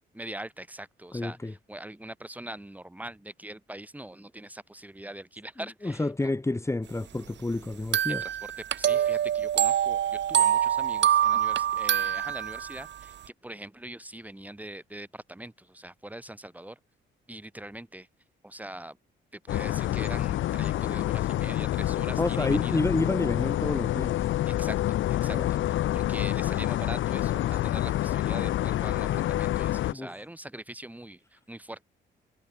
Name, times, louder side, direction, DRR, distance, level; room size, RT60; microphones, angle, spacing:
voice 1, 0.1-6.3 8.1-13.1 13.4-16.8 17.3-18.1 18.4-19.0 19.3-22.8 24.4-24.8 25.2-31.8, right 1 dB, 10° right, 4.7 m, -42 dB
voice 2, 1.1-1.5 5.8-8.2 22.2-24.3 25.3-25.5 29.9-30.1, left 2 dB, 15° left, 2.4 m, -29 dB
sound 1, 7.9-12.9, right 10 dB, 65° right, 2.3 m, -25 dB
sound 2, 19.5-29.9, left 13 dB, 75° left, 1.0 m, -27 dB
cardioid pair, 90°, 20 cm